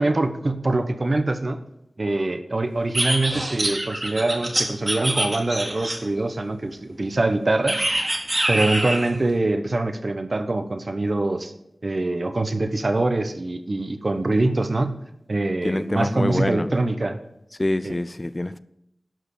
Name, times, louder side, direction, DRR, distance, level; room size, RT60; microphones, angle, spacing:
voice 1, 0.0-1.6 2.0-7.9 8.5-11.5 11.8-15.0 15.3-17.2 17.8-17.9, right 2 dB, 50° right, 1.0 m, -24 dB
sound 1, 2.9-6.2 7.7-9.1, right 1 dB, 35° right, 2.2 m, -25 dB
voice 2, 15.6-16.7 17.6-18.6, left 1 dB, 30° left, 0.4 m, -25 dB
12.0 x 5.0 x 8.3 m
wide cardioid pair, 60°, 0 cm